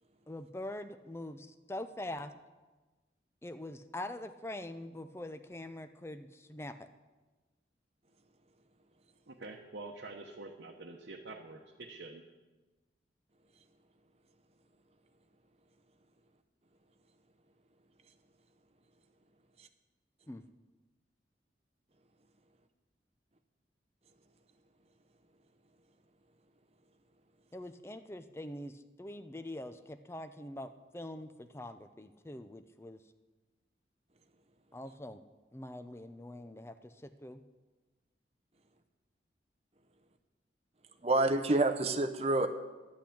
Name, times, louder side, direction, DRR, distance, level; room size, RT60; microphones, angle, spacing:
voice 1, 0.3-2.3 3.4-6.9 20.3-20.4 27.5-33.0 34.7-35.2 35.5-37.4, left 1 dB, 15° left, 10 dB, 0.5 m, -44 dB
voice 2, 9.3-12.2, right 2 dB, 75° right, 0 dB, 0.9 m, -46 dB
voice 3, 41.0-42.5, right 2 dB, 35° right, 8 dB, 0.7 m, -27 dB
11.5 x 6.0 x 8.5 m, 1.2 s
head